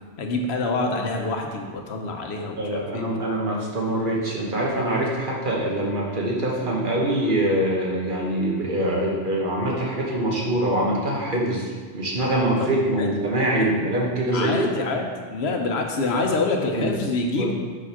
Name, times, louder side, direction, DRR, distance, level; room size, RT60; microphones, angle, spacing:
voice 1, 0.2-3.0 12.6-12.7 13.0-13.3 13.6-13.7 14.3-17.5, left 3 dB, 90° left, 3 dB, 1.1 m, -26 dB
voice 2, 2.6-14.7 16.1-16.2 16.8-16.9 17.4-17.5, right 1 dB, 55° right, -3 dB, 1.4 m, -24 dB
5.1 x 5.0 x 5.7 m, 1.5 s
omnidirectional pair, 1.1 m